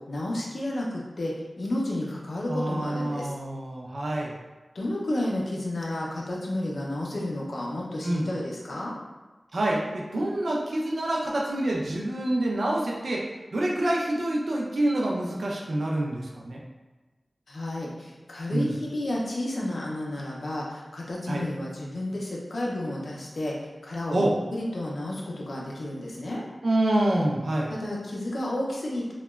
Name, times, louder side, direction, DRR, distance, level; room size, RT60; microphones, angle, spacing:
voice 1, 0.1-3.3 4.7-8.9 17.5-23.5 23.8-26.4 27.7-29.1, left 1 dB, 75° left, -3 dB, 0.4 m, -31 dB
voice 2, 2.5-4.3 8.0-8.3 9.5-16.6 18.5-18.7 21.3-21.4 24.1-24.3 26.6-27.7, right 1 dB, 75° right, -2 dB, 0.4 m, -27 dB
2.8 x 2.1 x 2.2 m, 1.2 s
wide cardioid pair, 70°, 0 cm